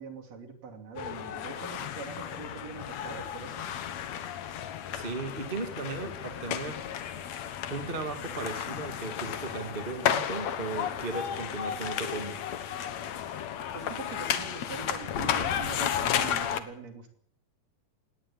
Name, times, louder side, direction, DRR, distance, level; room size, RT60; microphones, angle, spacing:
voice 1, 0.0-3.7 13.7-17.1, right 5 dB, 50° right, 5 dB, 3.8 m, -43 dB
sound 1, 1.0-16.6, left 9 dB, 60° left, 2.1 m, -33 dB
voice 2, 4.9-6.8 7.7-12.4, right 3 dB, 20° right, 6 dB, 1.7 m, -36 dB
18.5 x 17.0 x 8.6 m, 0.67 s
omnidirectional pair, 4.2 m